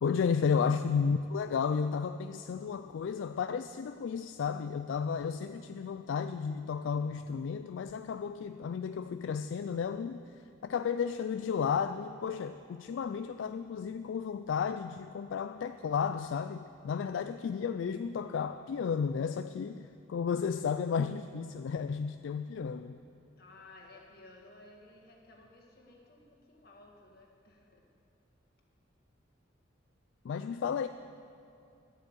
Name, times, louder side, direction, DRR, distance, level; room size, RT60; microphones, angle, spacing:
voice 1, 0.0-10.2 10.6-23.0 30.2-30.9, left 6 dB, 75° left, 10 dB, 0.3 m, -33 dB
voice 2, 23.4-27.9, left 2 dB, 50° left, 0 dB, 1.8 m, -56 dB
11.5 x 8.1 x 7.8 m, 2.6 s
head